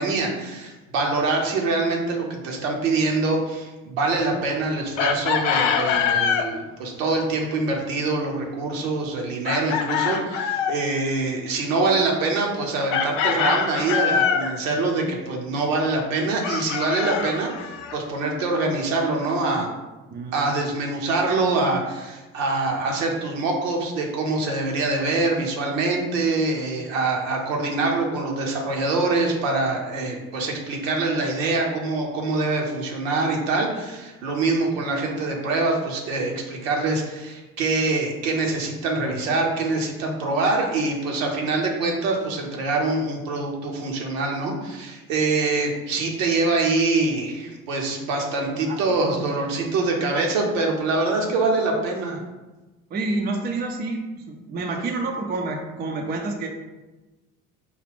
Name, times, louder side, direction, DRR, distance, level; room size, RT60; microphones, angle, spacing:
voice 1, 0.0-19.7 20.3-52.2, right 3 dB, 65° right, 0 dB, 0.9 m, -24 dB
Chicken rooster, 5.0-6.5 9.5-10.8 12.9-14.5 16.4-18.0, left 7 dB, 65° left, 0.5 m, -24 dB
voice 2, 20.1-20.5 48.4-48.8 49.2-49.3 52.9-54.0 54.3-56.5, right 3 dB, 25° right, 2 dB, 0.5 m, -28 dB
5.1 x 2.4 x 3.4 m, 1.1 s
figure-of-eight pair, 55°, 41 cm